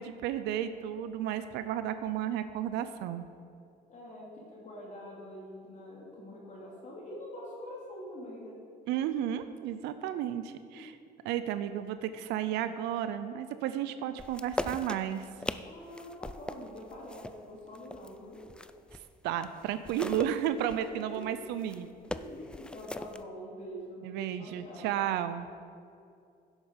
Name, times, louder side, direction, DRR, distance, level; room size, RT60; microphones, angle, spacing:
voice 1, 0.0-3.2 8.9-11.0 11.2-15.3 19.2-21.9 24.0-25.5, right 10 dB, 90° right, 11 dB, 0.5 m, -33 dB
voice 2, 3.9-8.6 10.8-10.9 15.6-18.4 20.1-21.4 22.1-25.0, equal, 45° left, -4 dB, 2.5 m, -45 dB
sound 1, 14.2-19.1 19.4-23.2, left 1 dB, 5° left, 0.3 m, -40 dB
10.5 x 8.1 x 5.2 m, 2.4 s
cardioid pair, 110°, 17 cm